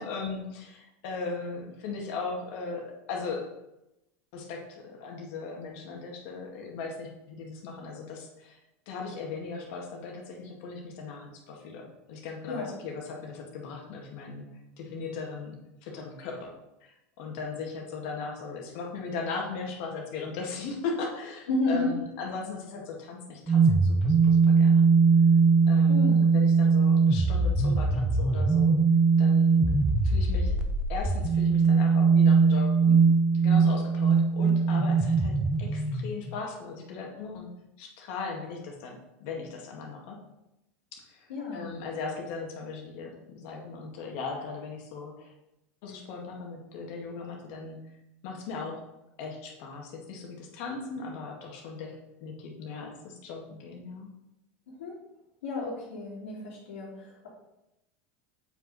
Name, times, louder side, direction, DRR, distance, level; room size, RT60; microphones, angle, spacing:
voice 1, 0.0-3.5 4.3-8.6 8.9-14.5 14.8-15.6 15.8-16.5 16.8-24.9 25.7-28.8 29.2-29.7 30.0-30.5 30.9-33.0 33.3-37.5 37.8-40.2 40.9-45.3 45.8-47.8 48.2-48.8 49.2-54.1, left 4 dB, 65° left, 0 dB, 1.9 m, -38 dB
voice 2, 21.5-21.9 25.9-26.3 41.3-41.7 54.7-54.9 55.4-57.3, left 2 dB, 85° left, -8 dB, 2.6 m, -32 dB
sound 1, 23.5-36.3, right 4 dB, 10° right, 0.9 m, -21 dB
7.7 x 5.3 x 4.1 m, 0.90 s
hypercardioid pair, 100°, 7 cm